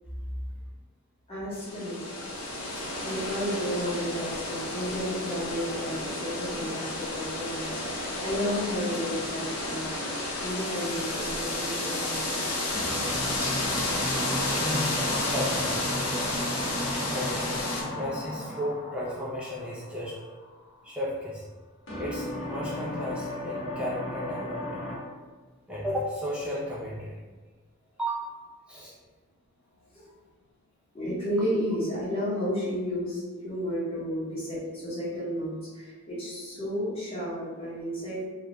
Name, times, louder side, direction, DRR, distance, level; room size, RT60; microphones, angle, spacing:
voice 1, 1.3-2.0 3.0-12.5 13.4-13.6 29.9-30.0 30.9-38.2, equal, 25° left, -10 dB, 0.9 m, -32 dB
sound 1, 1.5-17.8, left 2 dB, 85° left, 0.6 m, -31 dB
voice 2, 2.5-3.0 14.4-15.0 15.3-15.8 17.1-17.6 17.9-20.2 20.8-21.4 21.9-24.8 25.7-27.2 28.0-28.3 28.7-28.9, equal, 5° right, -7 dB, 0.3 m, -34 dB
sound 2, 5.8-6.5 12.7-20.8 21.9-25.0, left 1 dB, 55° left, 0.9 m, -35 dB
2.3 x 2.1 x 2.9 m, 1.4 s
head